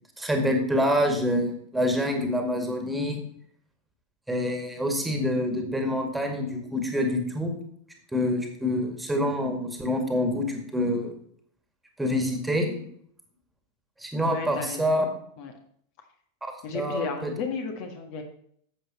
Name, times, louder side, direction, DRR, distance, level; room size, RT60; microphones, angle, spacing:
voice 1, 0.2-3.2 4.3-7.5 8.1-11.2 12.0-12.8 14.0-15.0 16.4-17.3, left 1 dB, 5° right, 3 dB, 2.1 m, -26 dB
voice 2, 14.2-14.9 15.4-15.5 16.6-18.2, left 5 dB, 45° left, 4 dB, 1.6 m, -33 dB
11.5 x 7.9 x 4.3 m, 0.65 s
figure-of-eight pair, 90°, 0 cm